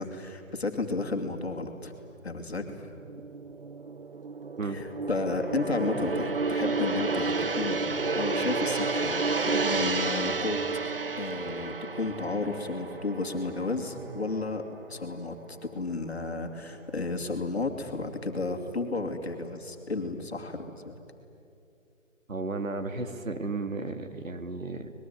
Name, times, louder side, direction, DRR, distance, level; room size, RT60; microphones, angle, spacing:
voice 1, 0.0-1.9 2.2-2.7 4.6-10.6 11.2-14.6 14.9-20.9, left 3 dB, 50° left, 4 dB, 2.6 m, -32 dB
Gong, 2.6-15.0 15.4-15.6, right 4 dB, 45° right, 0.7 m, -31 dB
voice 2, 22.3-24.9, right 3 dB, 75° right, 8 dB, 2.2 m, -34 dB
25.5 x 21.0 x 9.3 m, 2.7 s
hypercardioid pair, 175°, 40 cm